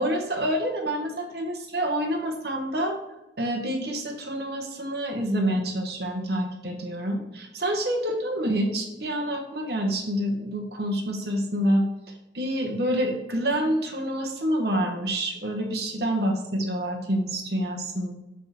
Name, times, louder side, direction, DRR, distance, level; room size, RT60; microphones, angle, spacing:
voice 1, 0.0-3.0 3.4-11.9 12.3-18.1, equal, 60° right, 2 dB, 1.0 m, -27 dB
6.0 x 4.9 x 4.2 m, 0.93 s
head